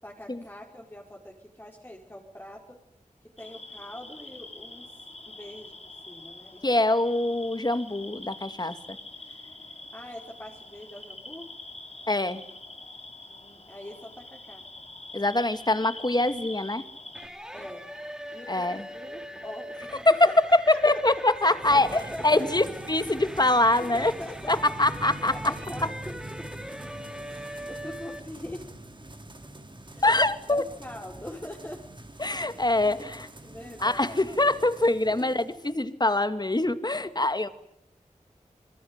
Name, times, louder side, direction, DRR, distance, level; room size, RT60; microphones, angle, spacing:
voice 1, 0.0-2.8 3.4-4.9 5.3-6.6 9.9-11.5 13.3-14.7 17.5-17.9 18.3-21.0 21.4-22.4 23.8-24.6 25.3-26.7 27.2-28.8 29.9-30.1 30.5-31.8 32.3-33.1 33.4-34.2 35.1-35.3 37.0-37.3, left 1 dB, 15° left, -1 dB, 5.0 m, -43 dB
sound 1, 3.4-17.3, left 2 dB, 55° left, 4.3 m, -45 dB
voice 2, 6.6-9.0 12.1-12.4 15.1-16.8 18.5-18.8 20.1-24.1 24.5-25.3 30.0-30.6 32.2-33.3 33.8-37.5, left 2 dB, 30° left, 11 dB, 2.2 m, -24 dB
sound 2, 17.1-28.2, equal, 5° right, 3.7 m, -41 dB
sound 3, 21.6-35.7, right 1 dB, 35° right, 3.9 m, -44 dB
26.5 x 22.5 x 9.7 m, 0.78 s
wide cardioid pair, 50°, 13 cm